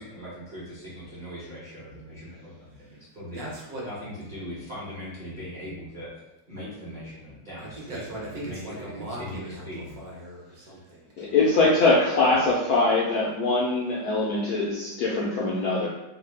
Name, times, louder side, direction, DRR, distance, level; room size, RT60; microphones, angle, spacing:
voice 1, 0.0-3.5 3.8-6.2 6.5-10.0 11.2-11.3 12.3-12.4, equal, 40° right, -10 dB, 0.7 m, -40 dB
voice 2, 2.7-3.0 3.3-3.8 7.6-11.5, right 1 dB, 60° right, -4 dB, 1.1 m, -39 dB
voice 3, 11.2-15.9, left 3 dB, 80° left, -5 dB, 0.8 m, -22 dB
3.1 x 2.1 x 3.2 m, 0.99 s
omnidirectional pair, 2.1 m